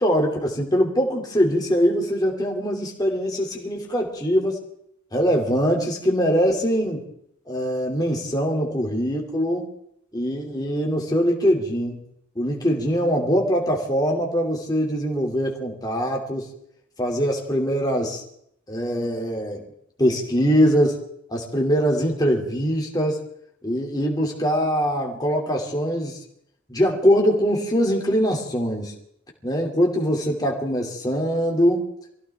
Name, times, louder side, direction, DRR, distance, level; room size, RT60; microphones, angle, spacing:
voice 1, 0.0-4.6 5.1-7.0 7.5-9.7 10.1-12.0 12.4-16.5 17.0-18.2 18.7-19.6 20.0-21.0 21.3-23.2 23.6-26.2 26.7-28.9 29.4-31.9, equal, 20° left, 0 dB, 2.7 m, -22 dB
24.5 x 16.5 x 3.5 m, 0.72 s
head